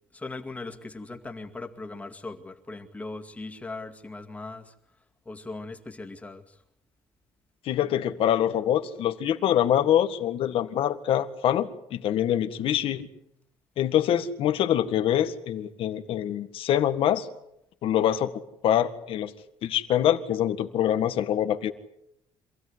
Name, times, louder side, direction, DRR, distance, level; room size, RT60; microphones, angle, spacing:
voice 1, 0.1-4.7 5.3-6.6, left 3 dB, 15° left, 5 dB, 2.2 m, -39 dB
voice 2, 7.7-13.1 13.8-17.3 17.8-18.3 18.6-19.3 19.6-21.7, left 10 dB, 65° left, 10 dB, 1.9 m, -25 dB
26.5 x 16.5 x 9.8 m, 0.79 s
cardioid pair, 155°, 10 cm